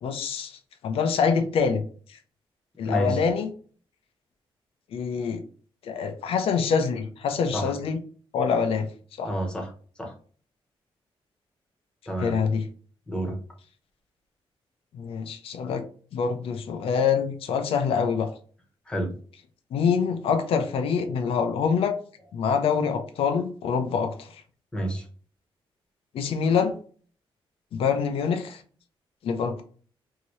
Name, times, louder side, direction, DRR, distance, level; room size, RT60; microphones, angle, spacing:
voice 1, 0.0-1.8 2.1-2.2 2.8-3.5 4.9-5.4 5.8-8.0 8.3-8.9 9.2-9.3 12.2-12.7 14.9-15.8 16.1-18.3 19.7-21.9 22.3-24.4 26.1-26.8 27.7-28.6 29.2-29.6, left 6 dB, 75° left, 6 dB, 0.5 m, -25 dB
voice 2, 2.8-3.2 7.5-7.7 9.2-9.7 10.0-10.1 12.1-12.4 13.1-13.4 18.9-19.2 24.7-25.1, right 1 dB, 10° left, 0 dB, 0.9 m, -29 dB
2.8 x 2.7 x 3.0 m, 0.42 s
wide cardioid pair, 135°, 10 cm